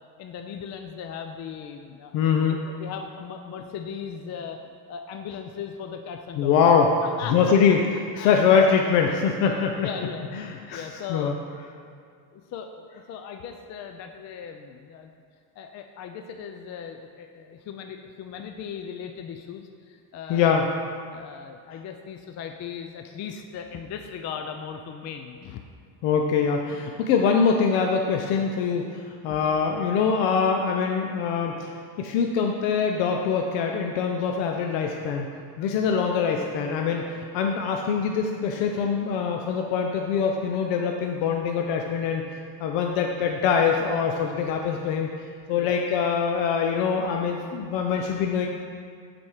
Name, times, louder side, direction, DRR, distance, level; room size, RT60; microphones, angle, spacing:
voice 1, 0.2-2.2 2.5-4.6 4.9-6.7 7.0-7.7 8.2-8.3 9.4-11.3 12.3-15.1 15.6-20.7 21.1-25.6 29.3-29.6 45.6-45.7, left 7 dB, 40° left, 5 dB, 0.4 m, -38 dB
voice 2, 2.1-2.6 6.4-6.9 7.3-7.8 8.2-9.8 10.3-10.8 11.1-11.3 20.3-20.6 26.0-35.3 35.6-37.1 37.3-42.2 42.6-45.1 45.5-48.5, left 6 dB, 80° left, 2 dB, 0.7 m, -23 dB
7.4 x 4.3 x 4.8 m, 2.2 s
cardioid pair, 135°, 43 cm